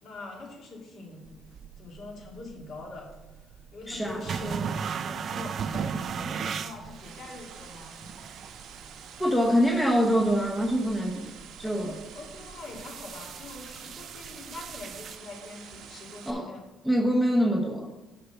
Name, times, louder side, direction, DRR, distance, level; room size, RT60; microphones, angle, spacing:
voice 1, 0.0-1.3 1.8-3.1 3.4-7.9 11.6-16.6, left 3 dB, 55° left, -1 dB, 2.3 m, -43 dB
sound 1, 1.3-15.2, right 6 dB, 40° right, 0.4 m, -38 dB
voice 2, 3.9-4.2 9.2-11.3 11.6-11.9 16.3-16.5 16.8-17.9, equal, 5° left, 1 dB, 0.8 m, -24 dB
sound 2, 6.5-16.3, right 7 dB, 75° right, 1.0 m, -48 dB
6.7 x 5.7 x 6.9 m, 1.1 s
cardioid pair, 150°, 0 cm